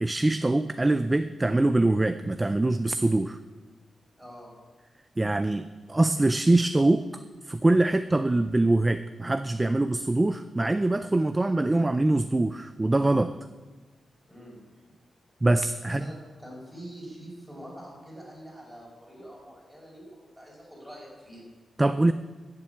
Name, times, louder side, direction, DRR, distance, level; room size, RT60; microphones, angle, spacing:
voice 1, 0.0-3.4 5.2-13.4 15.4-16.0 21.8-22.1, right 2 dB, 15° right, 11 dB, 0.4 m, -24 dB
voice 2, 4.2-4.5 14.2-14.6 15.8-20.0 20.3-21.4, equal, ahead, -4 dB, 5.4 m, -45 dB
13.5 x 7.5 x 9.3 m, 1.3 s
wide cardioid pair, 150°, 0 cm